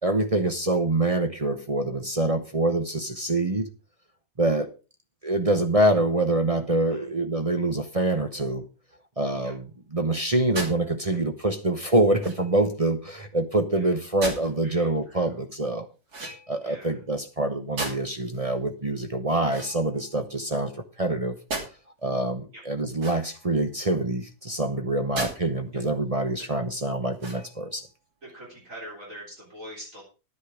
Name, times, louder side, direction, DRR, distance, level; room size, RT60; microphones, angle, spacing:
voice 1, 0.0-3.7 4.4-4.7 5.2-8.6 9.2-15.9 16.5-20.7 21.0-21.4 22.0-27.9, right 2 dB, 30° right, 7 dB, 0.8 m, -25 dB
sound 1, 10.5-10.8 12.2-12.6 14.2-14.5 16.1-16.7 17.8-18.2 19.4-20.3 21.5-21.7 22.9-23.5 25.1-25.4 25.9-26.0 27.1-27.7, right 2 dB, 70° right, 3.5 m, -35 dB
voice 2, 14.6-15.4 16.6-17.0 22.5-22.6 28.2-30.0, equal, 50° right, -3 dB, 4.1 m, -44 dB
11.0 x 9.9 x 4.9 m, 0.33 s
omnidirectional pair, 1.7 m